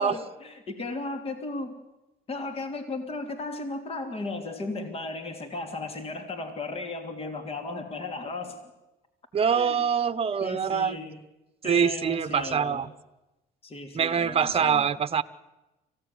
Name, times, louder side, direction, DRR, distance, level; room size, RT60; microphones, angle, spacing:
voice 1, 0.0-1.8 2.3-8.6 9.6-9.7 10.4-11.2 11.6-12.8 13.6-14.9, left 2 dB, 35° left, 7 dB, 3.2 m, -35 dB
voice 2, 9.3-11.0 11.6-12.9 13.9-15.2, right 7 dB, 35° right, 14 dB, 1.1 m, -24 dB
25.5 x 17.0 x 9.7 m, 1.0 s
cardioid pair, 110°, 17 cm